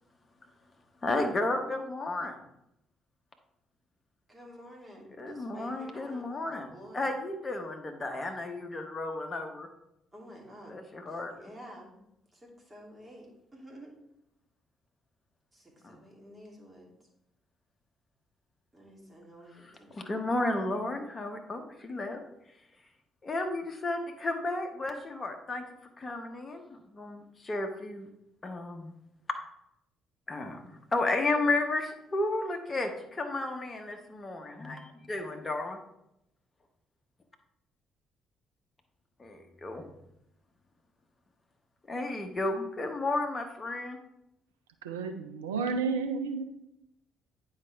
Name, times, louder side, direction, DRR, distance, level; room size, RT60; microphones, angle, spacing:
voice 1, 1.0-2.4 5.2-6.7 6.9-9.7 10.7-11.3 15.8-16.0 19.9-22.2 23.2-25.6 26.0-28.1 28.4-28.9 30.3-35.8 39.2-39.8 41.9-44.0, left 2 dB, 35° left, 4 dB, 1.1 m, -33 dB
voice 2, 4.3-7.1 10.1-10.8 11.1-12.0 12.3-13.3 13.5-13.9 15.5-16.9 18.7-20.5, equal, 20° right, -2 dB, 2.8 m, -50 dB
voice 3, 44.8-46.4, right 5 dB, 85° right, 6 dB, 0.5 m, -31 dB
9.5 x 4.8 x 3.4 m, 0.81 s
figure-of-eight pair, 45°, 0 cm